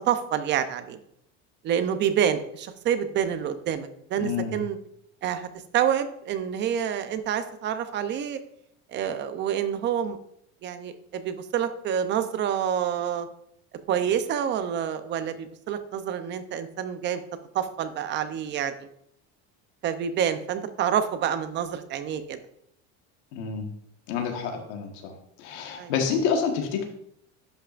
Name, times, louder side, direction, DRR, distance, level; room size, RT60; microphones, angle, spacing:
voice 1, 0.1-1.0 1.6-4.8 5.2-5.5 5.7-8.4 8.9-10.2 10.6-13.3 13.9-17.2 17.5-18.7 19.8-22.4 25.8-25.9, right 9 dB, 35° right, 10 dB, 0.6 m, -27 dB
voice 2, 4.2-4.5 23.3-23.7 24.1-25.1 25.4-26.8, left 6 dB, 85° left, 3 dB, 1.5 m, -28 dB
11.0 x 5.6 x 2.5 m, 0.72 s
cardioid pair, 155°, 33 cm